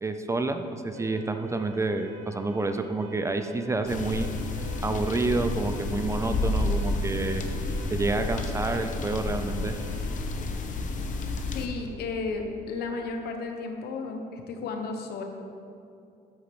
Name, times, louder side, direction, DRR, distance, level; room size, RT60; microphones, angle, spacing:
voice 1, 0.0-4.3 4.8-7.4 7.9-9.7, right 3 dB, 15° right, 7 dB, 0.5 m, -29 dB
Alarm, 0.9-10.2, right 6 dB, 80° right, 1.7 m, -48 dB
sound 1, 3.9-11.7, left 2 dB, 50° left, 0.9 m, -30 dB
voice 2, 11.5-15.2, left 4 dB, 70° left, 4 dB, 1.1 m, -33 dB
8.9 x 4.3 x 6.9 m, 2.5 s
cardioid pair, 110°, 17 cm